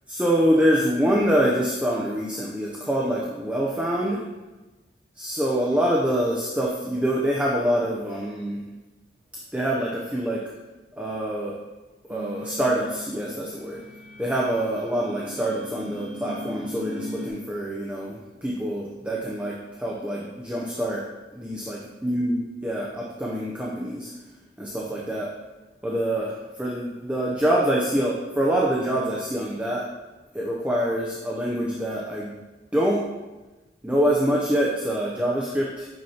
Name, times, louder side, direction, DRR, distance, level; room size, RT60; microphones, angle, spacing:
voice 1, 0.1-4.2 5.2-8.6 9.5-10.4 11.0-11.5 12.1-13.8 14.2-21.0 21.3-24.1 24.6-25.3 25.8-29.9 30.3-32.3 32.7-33.0 33.8-35.9, equal, 5° right, -4 dB, 0.6 m, -25 dB
sound 1, 12.1-17.3, left 1 dB, 85° right, 1.0 m, -38 dB
7.6 x 5.9 x 2.8 m, 1.1 s
head